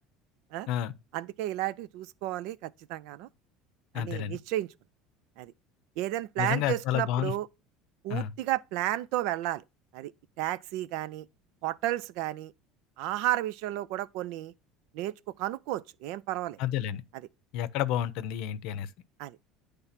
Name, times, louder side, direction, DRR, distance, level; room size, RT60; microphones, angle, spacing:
voice 1, 1.1-3.3 3.9-4.7 5.4-5.5 6.0-7.5 8.0-9.6 9.9-10.1 10.4-11.3 11.6-12.5 13.0-14.5 14.9-16.6 17.1-17.3 19.2-19.4, right 14 dB, 70° right, 0.4 m, -32 dB
voice 2, 3.9-4.4 6.4-7.3 8.1-8.3 16.6-17.0 17.5-18.9, left 11 dB, 65° left, 0.6 m, -30 dB
9.5 x 3.4 x 5.7 m
cardioid pair, 140°, 0 cm